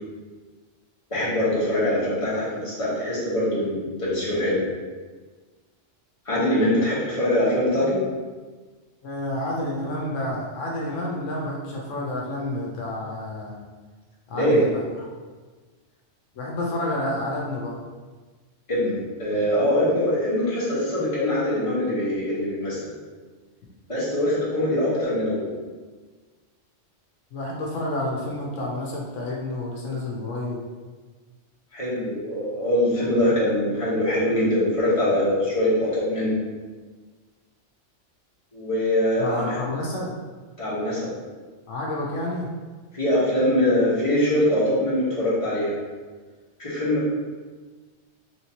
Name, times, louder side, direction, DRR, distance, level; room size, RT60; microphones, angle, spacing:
voice 1, 1.1-4.6 6.2-8.0 14.3-14.6 18.7-22.9 23.9-25.5 31.7-36.4 38.5-39.6 40.6-41.1 42.9-45.7 46.6-47.1, left 1 dB, 30° left, -9 dB, 1.2 m, -23 dB
voice 2, 9.0-13.6 14.3-15.1 16.3-17.7 24.5-24.6 27.3-30.6 39.2-40.1 41.7-42.5, left 1 dB, 80° left, -3 dB, 1.0 m, -29 dB
3.5 x 3.0 x 2.8 m, 1.4 s
omnidirectional pair, 1.3 m